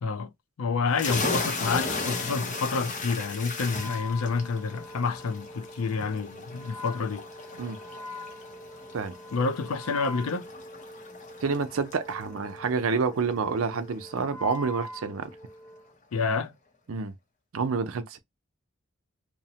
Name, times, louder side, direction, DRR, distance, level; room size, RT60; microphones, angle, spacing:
voice 1, 0.6-7.3 9.3-10.5 16.1-16.5, left 4 dB, 90° left, 0.5 m, -29 dB
sound 1, 0.9-14.3, left 3 dB, 35° left, 0.6 m, -36 dB
Wind instrument woodwind instrument, 1.2-15.9, left 1 dB, 15° left, 1.0 m, -44 dB
voice 2, 11.4-15.3 16.9-17.2 17.5-18.2, right 5 dB, 80° right, 0.5 m, -28 dB
2.9 x 2.0 x 2.7 m
head